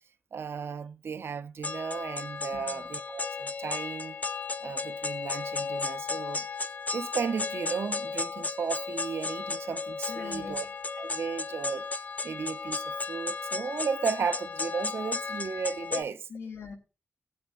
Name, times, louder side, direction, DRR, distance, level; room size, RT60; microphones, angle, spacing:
voice 1, 0.3-4.2 4.6-6.4 6.9-10.7 11.0-11.9 12.2-16.2, right 6 dB, 75° right, 0.6 m, -34 dB
sound 1, 1.6-16.0, left 4 dB, 40° left, 0.6 m, -34 dB
voice 2, 2.5-2.9 10.1-10.7 15.9-16.7, left 4 dB, 90° left, 2.6 m, -40 dB
21.0 x 7.8 x 2.5 m
wide cardioid pair, 100°, 4 cm